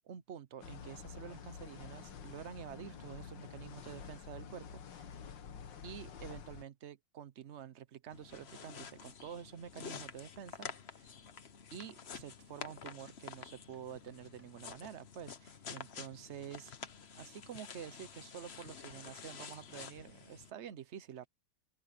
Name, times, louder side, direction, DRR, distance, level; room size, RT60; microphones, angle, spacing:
voice 1, 0.0-5.2 5.8-11.1 11.7-16.7 17.1-21.3, right 8 dB, 55° right, 0.8 m, -48 dB
sound 1, 0.6-6.6, left 7 dB, 70° left, 2.0 m, -49 dB
sound 2, 8.1-20.5, left 7 dB, 45° left, 1.0 m, -49 dB
sound 3, 11.8-14.5 15.1-17.5, right 1 dB, 5° right, 3.3 m, -71 dB
open air
omnidirectional pair, 2.1 m